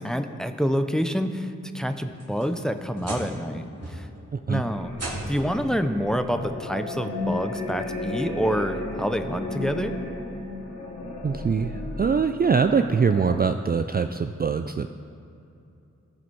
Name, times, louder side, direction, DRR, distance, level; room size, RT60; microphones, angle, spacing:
voice 1, 0.0-4.1 4.5-4.9 5.3-9.9, equal, ahead, 8 dB, 0.6 m, -27 dB
sound 1, 1.9-3.5 3.8-4.3 4.9-5.6 6.8-6.9 7.5-7.6 9.2-9.3, right 1 dB, 60° right, 2.1 m, -36 dB
voice 2, 4.3-4.6 11.2-14.9, right 5 dB, 35° right, 8 dB, 0.4 m, -23 dB
sound 2, 4.5-13.4, left 2 dB, 75° left, 1.7 m, -34 dB
14.5 x 4.9 x 4.7 m, 2.7 s
cardioid pair, 40°, 29 cm